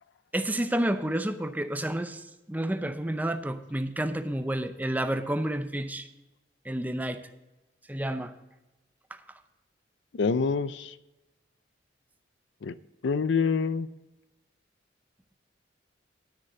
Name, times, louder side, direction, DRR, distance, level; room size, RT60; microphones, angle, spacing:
voice 1, 0.3-6.1 6.7-7.2 7.9-8.3, right 1 dB, 10° right, 9 dB, 0.6 m, -30 dB
voice 2, 10.2-10.9 12.6-12.7 13.0-13.9, left 5 dB, 75° left, 16 dB, 0.5 m, -26 dB
10.5 x 6.5 x 6.7 m, 1.0 s
head